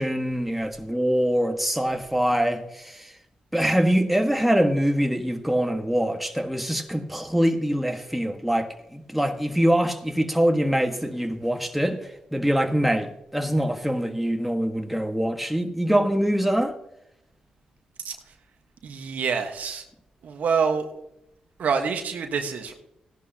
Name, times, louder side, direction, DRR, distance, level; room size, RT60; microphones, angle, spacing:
voice 1, 0.0-3.1 3.5-16.7, equal, 5° right, 1.6 m, -24 dB
voice 2, 18.8-19.8 20.2-20.9 21.6-22.7, right 6 dB, 70° right, 1.3 m, -26 dB
15.5 x 11.0 x 2.9 m
supercardioid pair, 50°, 3 cm